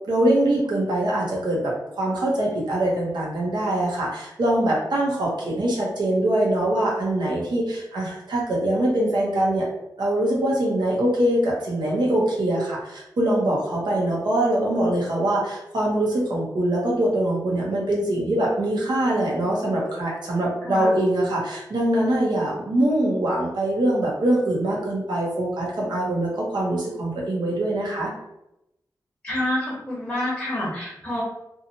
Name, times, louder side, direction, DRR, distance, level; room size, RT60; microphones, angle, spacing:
voice 1, 0.1-9.7 10.0-28.1, right 1 dB, 80° right, -3 dB, 0.9 m, -23 dB
voice 2, 20.6-21.0 29.2-31.2, left 1 dB, 10° left, -7 dB, 1.0 m, -28 dB
2.7 x 2.4 x 2.8 m, 0.86 s
wide cardioid pair, 110°, 7 cm